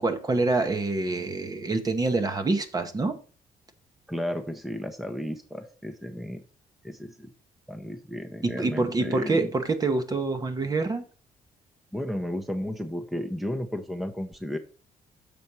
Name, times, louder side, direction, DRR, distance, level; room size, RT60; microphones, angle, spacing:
voice 1, 0.0-3.2 8.4-11.0, right 3 dB, 25° right, 0.9 m, -26 dB
voice 2, 4.1-6.4 6.8-7.3 7.7-9.5 11.9-14.6, equal, ahead, 0.8 m, -33 dB
6.9 x 4.2 x 6.0 m
cardioid pair, 125°, 15 cm